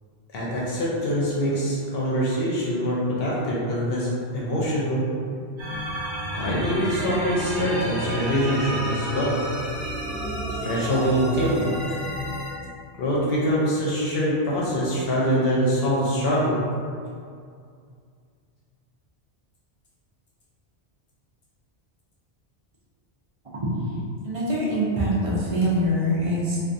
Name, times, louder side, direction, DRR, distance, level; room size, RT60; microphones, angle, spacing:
voice 1, 0.3-5.1 6.3-9.4 10.6-11.8 13.0-16.7, equal, 70° left, -6 dB, 0.8 m, -24 dB
sound 1, 5.6-12.5, equal, 85° right, 1.1 m, -30 dB
voice 2, 24.2-26.6, equal, 50° right, -7 dB, 0.4 m, -24 dB
2.4 x 2.3 x 2.6 m, 2.2 s
omnidirectional pair, 1.1 m